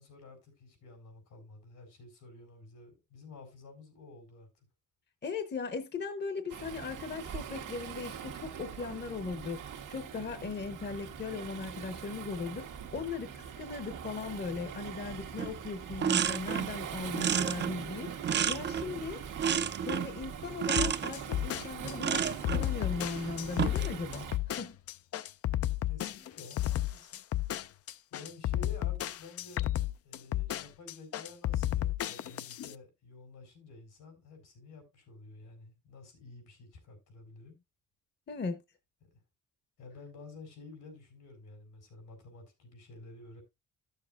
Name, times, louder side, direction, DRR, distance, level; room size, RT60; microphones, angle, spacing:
voice 1, 0.0-4.5 25.9-27.2 28.1-29.7 30.0-37.6 39.8-43.4, left 3 dB, 90° left, 4.3 m, -51 dB
voice 2, 5.2-9.6 9.9-18.1 18.5-19.2 19.8-24.8 38.3-38.6, left 4 dB, 35° left, 0.8 m, -38 dB
Waves surf, 6.5-24.4, right 8 dB, 85° right, 1.4 m, -42 dB
sound 1, 15.4-15.5 15.8-16.8 17.1-19.0 19.4-20.2 20.6-21.1 22.0-22.7 23.4-23.9, right 8 dB, 35° right, 0.5 m, -31 dB
sound 2, 20.8-32.7, left 13 dB, 50° left, 0.4 m, -33 dB
14.0 x 6.7 x 2.4 m
cardioid pair, 125°, 30 cm